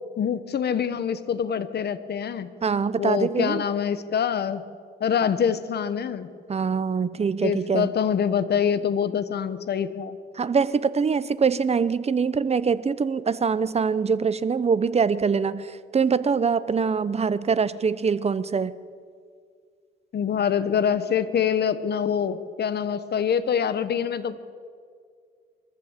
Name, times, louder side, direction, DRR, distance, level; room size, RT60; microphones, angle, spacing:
voice 1, 0.2-2.5 3.0-4.6 5.0-6.3 7.4-10.2 20.1-24.4, left 7 dB, 55° left, 13 dB, 1.3 m, -25 dB
voice 2, 2.6-3.6 6.5-7.9 10.3-18.7, right 5 dB, 30° right, 15 dB, 0.9 m, -24 dB
23.0 x 14.0 x 8.3 m, 2.1 s
cardioid pair, 90°, 20 cm